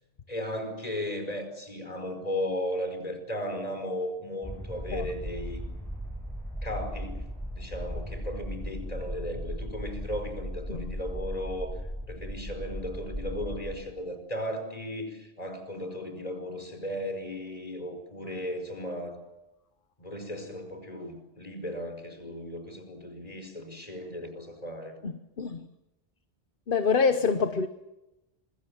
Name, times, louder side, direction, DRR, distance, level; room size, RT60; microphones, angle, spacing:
voice 1, 0.3-5.6 6.6-7.2 7.5-11.7 12.1-19.2 20.0-25.0, left 1 dB, 35° left, 5.1 m, -36 dB
sound 1, 4.4-13.8, equal, ahead, 7.9 m, -37 dB
voice 2, 25.0-25.7 26.7-27.7, left 5 dB, 55° left, 1.2 m, -26 dB
26.5 x 22.0 x 7.4 m
omnidirectional pair, 1.1 m